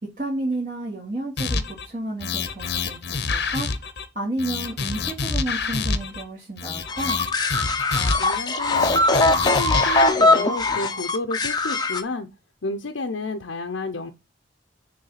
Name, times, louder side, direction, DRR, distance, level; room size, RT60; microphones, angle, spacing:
voice 1, 0.2-3.7 4.1-7.3, right 1 dB, 40° right, 2.9 m, -31 dB
sound 1, 1.4-1.9 2.2-4.1 4.4-6.2 6.6-8.4 8.7-10.0, left 4 dB, 55° left, 0.8 m, -27 dB
sound 2, 6.9-12.0, left 2 dB, 20° left, 0.7 m, -21 dB
voice 2, 8.2-12.3 12.6-14.1, left 2 dB, 90° left, 0.7 m, -31 dB
6.7 x 3.4 x 5.7 m
head